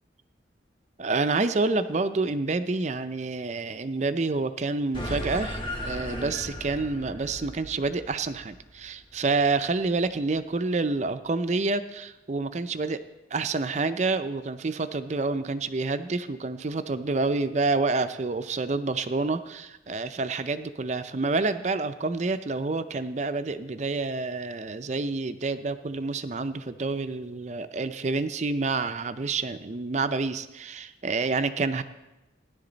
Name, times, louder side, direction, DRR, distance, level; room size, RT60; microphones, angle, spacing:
voice 1, 1.0-13.0 13.3-31.8, right 3 dB, 40° right, 11 dB, 0.5 m, -28 dB
sound 1, 4.9-9.7, equal, 25° left, 2.0 m, -36 dB
16.5 x 10.5 x 4.0 m, 1.0 s
head